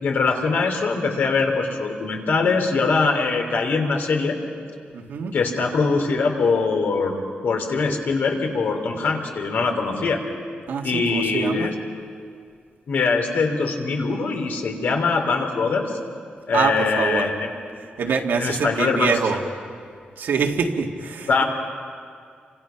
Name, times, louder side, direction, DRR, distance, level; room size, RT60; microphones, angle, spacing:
voice 1, 0.0-4.4 5.3-7.2 7.4-10.2 10.8-11.7 12.9-16.0 16.5-17.5 18.4-19.2 21.3-21.4, left 4 dB, 75° left, 3 dB, 3.5 m, -22 dB
voice 2, 4.9-5.3 10.7-11.7 16.5-17.3 18.0-19.4 20.2-21.4, right 5 dB, 80° right, 2 dB, 2.0 m, -24 dB
30.0 x 25.5 x 5.9 m, 2.2 s
wide cardioid pair, 150°, 3 cm